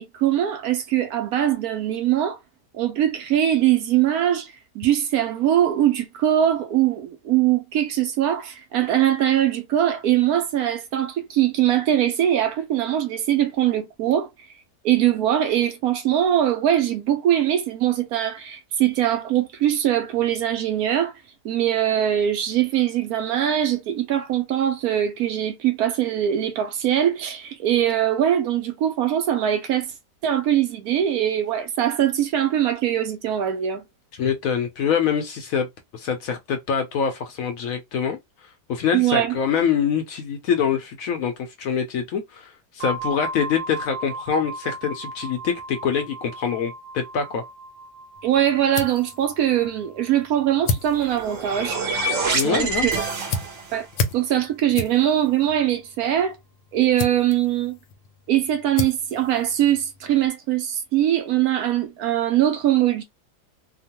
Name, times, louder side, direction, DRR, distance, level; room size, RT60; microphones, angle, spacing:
voice 1, 0.0-2.4 2.7-14.3 14.8-21.1 21.4-29.9 30.2-33.8 38.9-39.4 48.2-51.8 52.3-52.9 53.7-53.9 54.1-56.4 56.7-57.8 58.3-63.0, right 11 dB, 70° right, 1.0 m, -22 dB
voice 2, 34.2-35.7 35.9-38.2 38.7-47.4 52.3-52.9, left 7 dB, 70° left, 0.8 m, -25 dB
sound 1, 42.8-52.4, right 3 dB, 85° right, 1.3 m, -38 dB
sound 2, 48.2-60.3, left 4 dB, 85° left, 1.2 m, -34 dB
sound 3, 50.8-53.9, right 3 dB, 55° right, 1.1 m, -26 dB
2.9 x 2.1 x 2.8 m
omnidirectional pair, 1.8 m